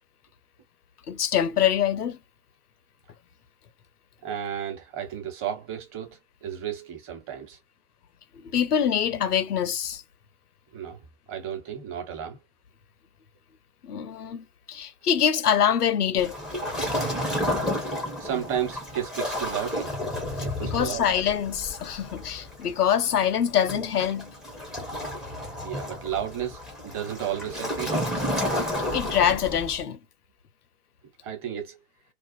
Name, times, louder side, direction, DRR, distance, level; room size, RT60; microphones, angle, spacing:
voice 1, 1.1-2.2 8.3-10.0 13.8-16.4 20.4-24.3 28.9-30.0, left 9 dB, 80° left, 0.6 m, -25 dB
voice 2, 4.2-7.6 10.7-12.4 18.2-19.9 20.4-21.0 25.6-28.2 31.2-31.8, right 9 dB, 30° right, 1.0 m, -33 dB
Waves surf, 16.2-29.8, left 1 dB, ahead, 0.4 m, -31 dB
2.4 x 2.3 x 2.5 m
figure-of-eight pair, 95°, 45 cm